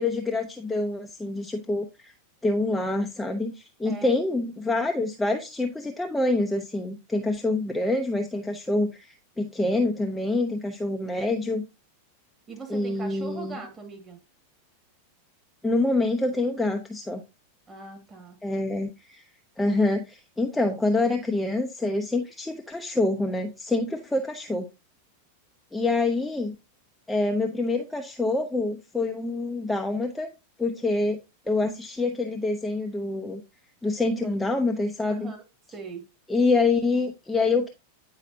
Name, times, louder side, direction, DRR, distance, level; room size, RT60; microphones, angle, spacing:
voice 1, 0.0-2.1 2.4-11.6 12.7-13.6 15.6-17.2 18.4-19.2 19.6-24.7 25.7-26.6 27.1-30.3 30.6-31.2 31.5-33.4 33.8-35.3 36.3-37.7, left 2 dB, 5° left, 0.6 m, -26 dB
voice 2, 3.8-4.2 12.5-14.2 17.7-18.4 35.1-35.4 35.7-36.0, right 4 dB, 20° right, 2.1 m, -40 dB
9.1 x 4.8 x 2.7 m
figure-of-eight pair, 90°, 0 cm